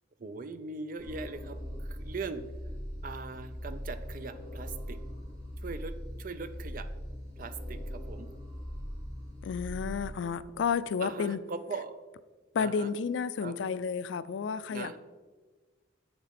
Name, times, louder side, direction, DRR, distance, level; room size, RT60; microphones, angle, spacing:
voice 1, 0.2-1.6 1.9-2.4 3.0-5.0 5.6-6.9 7.4-8.3 11.0-12.0 12.6-12.9 13.4-13.5 14.7-15.0, right 4 dB, 45° right, 11 dB, 0.5 m, -40 dB
sound 1, 1.0-10.1, equal, 20° right, 2.5 m, -40 dB
voice 2, 9.4-11.4 12.5-15.0, left 6 dB, 80° left, 15 dB, 0.4 m, -31 dB
7.4 x 6.9 x 4.2 m, 1.4 s
head